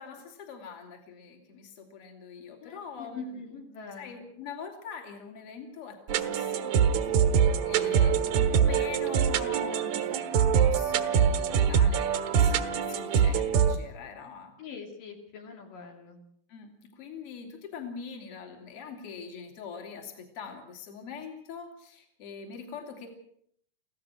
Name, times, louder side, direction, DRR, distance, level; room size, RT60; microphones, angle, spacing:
voice 1, 0.0-3.5 4.0-6.8 7.0-7.3 7.6-8.1 8.5-14.5 16.5-23.1, left 6 dB, 40° left, 3 dB, 3.7 m, -43 dB
voice 2, 2.6-4.2 7.5-8.2 14.6-16.2, left 4 dB, 70° left, 2 dB, 4.4 m, -43 dB
sound 1, 6.1-13.8, right 7 dB, 75° right, 3.1 m, -24 dB
26.5 x 16.5 x 6.3 m, 0.67 s
omnidirectional pair, 4.1 m